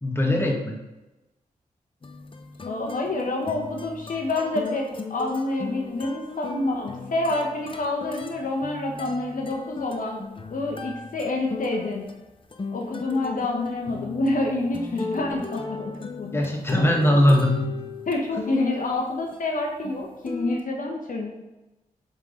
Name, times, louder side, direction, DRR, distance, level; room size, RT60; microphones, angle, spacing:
voice 1, 0.0-0.8 16.3-17.7, left 1 dB, 15° left, 0 dB, 1.6 m, -20 dB
sound 1, 2.0-19.0 19.3-20.6, left 4 dB, 35° left, 0.7 m, -37 dB
voice 2, 2.6-10.2 10.5-12.0 12.7-16.4 16.7-16.8 18.1-21.3, left 2 dB, 65° left, 1 dB, 1.0 m, -28 dB
7.4 x 3.8 x 3.8 m, 1.0 s
cardioid pair, 45°, 15 cm